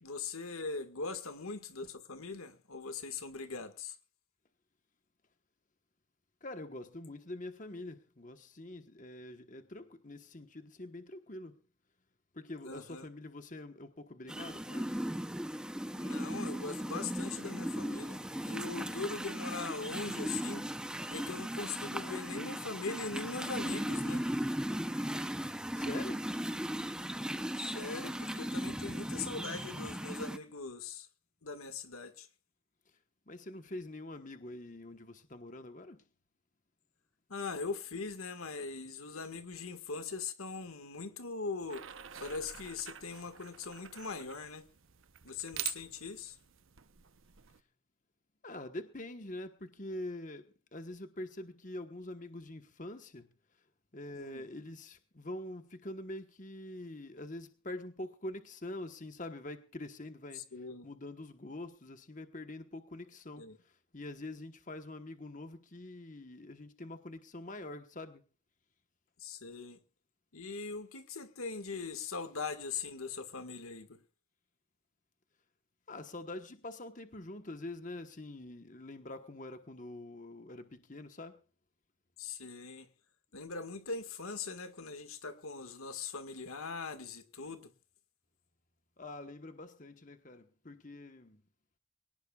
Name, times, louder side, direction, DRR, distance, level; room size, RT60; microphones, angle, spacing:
voice 1, 0.0-4.0 12.6-13.1 15.9-20.7 21.1-24.2 27.6-31.1 31.4-32.3 37.3-41.8 42.2-44.6 45.2-46.4 54.1-54.4 60.3-60.9 63.4-63.6 69.2-69.8 70.3-74.0 82.2-82.9 83.3-87.7, left 4 dB, 85° left, 1.8 m, -41 dB
voice 2, 6.4-11.6 12.3-15.0 25.7-26.3 33.3-36.0 48.4-53.3 53.9-60.5 60.8-68.2 75.9-81.4 89.0-91.4, left 1 dB, 35° left, 1.2 m, -45 dB
sound 1, 14.3-30.4, equal, 5° right, 0.7 m, -37 dB
sound 2, 41.7-47.6, right 12 dB, 70° right, 0.9 m, -46 dB
24.0 x 18.0 x 2.4 m
head